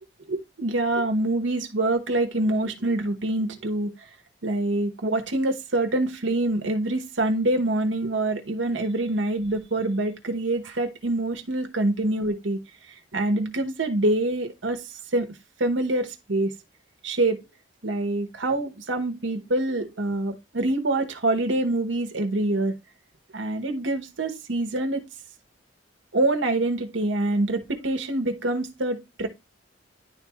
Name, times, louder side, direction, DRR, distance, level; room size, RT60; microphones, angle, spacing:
voice 1, 0.3-3.9 4.4-12.6 13.1-14.8 15.1-15.3 15.6-16.5 17.0-17.4 17.8-22.7 23.3-25.0 26.1-29.3, right 2 dB, 90° right, 1.1 m, -25 dB
10.5 x 3.5 x 3.0 m
head